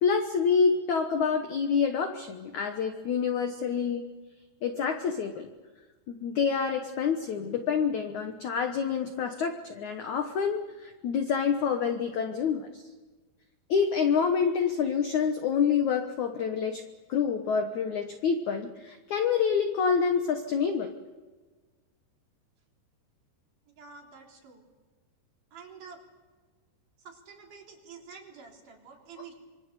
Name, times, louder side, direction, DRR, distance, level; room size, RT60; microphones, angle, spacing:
voice 1, 0.0-4.0 4.6-5.5 6.1-12.8 13.7-16.8 17.1-20.9, left 6 dB, 80° left, 6 dB, 1.7 m, -27 dB
voice 2, 23.8-24.6 25.5-26.0 27.0-29.3, right 6 dB, 45° right, 0 dB, 4.8 m, -48 dB
26.0 x 24.5 x 6.8 m, 1.3 s
omnidirectional pair, 5.3 m